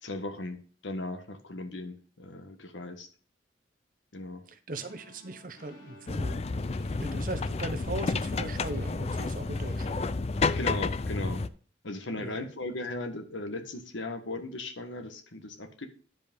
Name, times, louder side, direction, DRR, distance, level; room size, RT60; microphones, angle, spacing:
voice 1, 0.0-3.1 4.1-4.4 10.6-11.4 11.8-15.9, left 2 dB, 85° left, 7 dB, 1.5 m, -37 dB
voice 2, 4.5-6.4 7.0-10.1 12.2-12.5, right 2 dB, 45° right, 9 dB, 1.0 m, -39 dB
sound 1, 4.7-10.1, left 1 dB, 50° left, 5.6 m, -55 dB
sound 2, 6.1-11.5, left 3 dB, 35° left, 0.4 m, -30 dB
10.5 x 5.1 x 5.3 m, 0.42 s
head